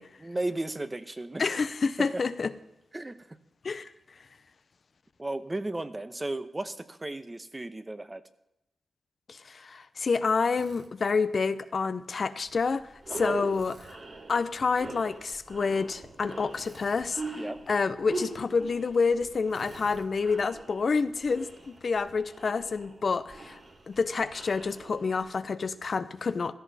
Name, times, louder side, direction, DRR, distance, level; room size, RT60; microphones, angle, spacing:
voice 1, 0.2-1.4 2.0-2.2 2.9-3.4 5.2-8.2 13.1-13.3 17.3-17.6, right 2 dB, 25° right, 1.0 m, -35 dB
voice 2, 1.4-2.5 3.6-3.9 9.3-12.9 13.2-14.0 14.3-23.6 23.9-26.5, left 4 dB, 60° left, 0.7 m, -28 dB
Drill, 10.5-10.9 13.5-14.0 16.5-17.1 19.5-20.1, right 3 dB, 70° right, 1.7 m, -52 dB
sound 1, 12.5-12.6 13.0-25.3, right 2 dB, 50° right, 5.2 m, -41 dB
16.0 x 13.0 x 4.2 m
cardioid pair, 50°, 0 cm